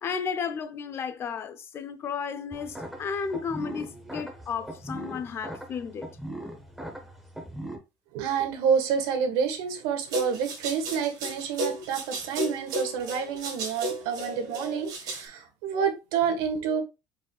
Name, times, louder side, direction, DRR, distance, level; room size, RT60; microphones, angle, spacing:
voice 1, 0.0-6.1, left 6 dB, 25° left, 0.4 m, -33 dB
sound 1, 2.5-7.8, right 1 dB, ahead, 0.7 m, -40 dB
voice 2, 8.1-16.8, right 7 dB, 80° right, 1.3 m, -28 dB
sound 2, 10.1-15.2, right 2 dB, 45° right, 2.1 m, -33 dB
4.7 x 4.5 x 2.3 m
cardioid pair, 170°, 9 cm